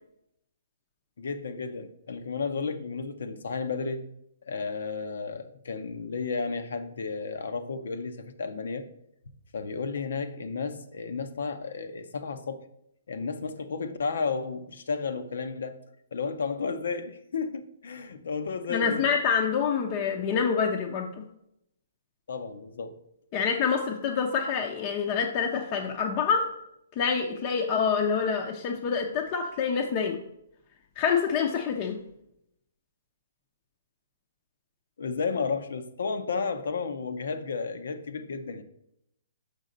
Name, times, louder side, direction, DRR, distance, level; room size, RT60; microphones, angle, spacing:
voice 1, 1.2-4.1 4.5-8.9 9.5-12.6 13.1-15.8 16.1-19.1 22.3-23.0 35.0-38.6, left 4 dB, 70° left, 0.7 m, -32 dB
voice 2, 18.7-21.2 23.3-26.5 27.0-30.2 31.0-32.0, left 6 dB, 35° left, 0.6 m, -26 dB
6.3 x 5.2 x 3.9 m
hypercardioid pair, 145°, 0 cm